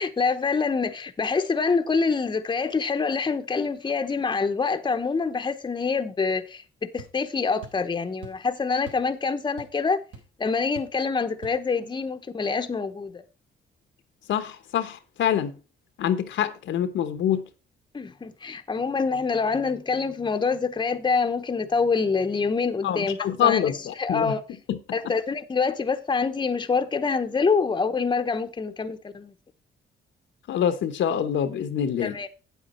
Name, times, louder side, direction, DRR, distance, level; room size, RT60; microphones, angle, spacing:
voice 1, 0.0-10.0 10.4-13.2 17.9-23.7 24.0-24.4 24.9-29.3 32.0-32.3, left 4 dB, 20° left, 0.8 m, -26 dB
sound 1, 7.0-7.2 7.6-7.9 8.2-8.5 8.9-9.1 9.4-9.9 10.1-10.3 10.8-11.0 11.4-11.6, right 4 dB, 80° right, 3.8 m, -44 dB
voice 2, 14.3-15.5 16.0-17.5 22.8-24.3 24.7-24.8 30.5-32.2, left 9 dB, 70° left, 1.0 m, -25 dB
8.4 x 8.2 x 4.2 m
cardioid pair, 90°, 20 cm